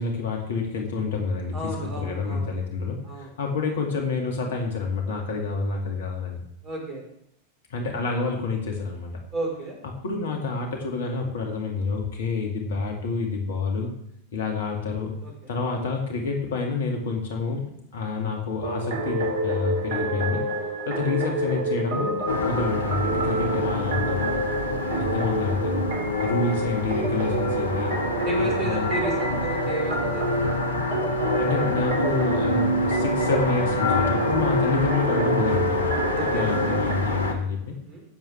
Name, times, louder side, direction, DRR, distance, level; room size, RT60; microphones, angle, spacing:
voice 1, 0.0-6.4 7.7-9.2 10.0-13.9 14.3-15.1 15.5-17.6 17.9-20.4 20.8-24.3 25.0-25.9 26.2-27.9 28.4-28.9 31.4-36.0 36.3-37.7, left 4 dB, 60° left, 2 dB, 2.2 m, -28 dB
voice 2, 1.5-2.5 3.0-3.3 6.6-7.0 9.3-9.8 15.2-15.5 24.8-25.0 28.2-30.7 36.1-36.8 37.7-38.0, right 3 dB, 30° right, 0 dB, 4.0 m, -33 dB
sound 1, 18.6-37.0, right 1 dB, 55° right, 2.3 m, -28 dB
sound 2, 22.3-37.3, left 2 dB, 75° left, 1.2 m, -27 dB
16.5 x 7.4 x 3.4 m, 0.75 s
figure-of-eight pair, 90°, 0 cm